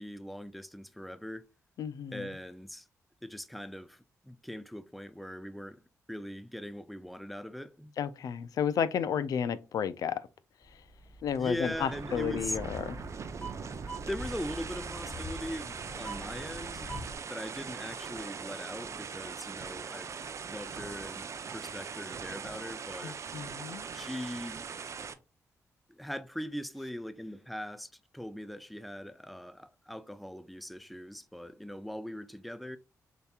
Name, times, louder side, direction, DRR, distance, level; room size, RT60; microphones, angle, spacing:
voice 1, 0.0-1.4 2.1-2.9 3.2-5.8 6.1-7.9 11.4-12.6 14.1-20.2 20.4-23.2 23.9-24.7 26.0-32.8, equal, ahead, 0.4 m, -41 dB
voice 2, 1.8-2.3 8.0-10.2 11.2-13.0 23.0-23.8, left 8 dB, 75° left, 0.4 m, -32 dB
sound 1, 10.6-17.1, equal, 25° left, 1.2 m, -44 dB
sound 2, 11.3-25.1, right 6 dB, 55° right, 0.5 m, -41 dB
6.7 x 2.9 x 2.3 m
cardioid pair, 80°, 6 cm